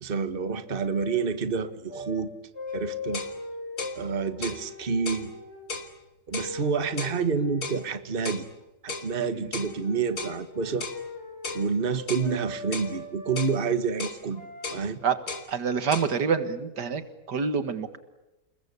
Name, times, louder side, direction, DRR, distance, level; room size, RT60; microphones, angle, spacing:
voice 1, 0.0-2.3 2.7-3.2 3.9-5.3 6.3-8.4 8.8-10.9 11.5-14.4 14.7-15.0, right 5 dB, 35° right, 10 dB, 1.6 m, -28 dB
sound 1, 0.7-1.2 1.9-2.2 2.5-5.7 6.3-8.3 9.0-9.3 9.6-13.5 14.3-14.7, left 3 dB, 40° left, 4.4 m, -40 dB
sound 2, 2.7-2.8 3.1-3.4 3.8-4.0 4.4-4.6 5.1-5.3 5.7-5.9 6.3-6.6 7.0-7.2 7.6-7.8 8.3-8.5 8.9-9.1 9.5-9.7 10.2-10.4 10.8-11.0 11.4-11.7 12.1-12.3 12.7-12.9 13.4-13.6 14.0-14.2 14.6-14.8 15.3-15.5 15.9-16.1, left 3 dB, 60° left, 3.0 m, -35 dB
voice 2, 15.5-17.0 17.3-18.0, right 6 dB, 75° right, 11 dB, 2.2 m, -27 dB
29.0 x 21.0 x 8.3 m, 0.98 s
omnidirectional pair, 1.8 m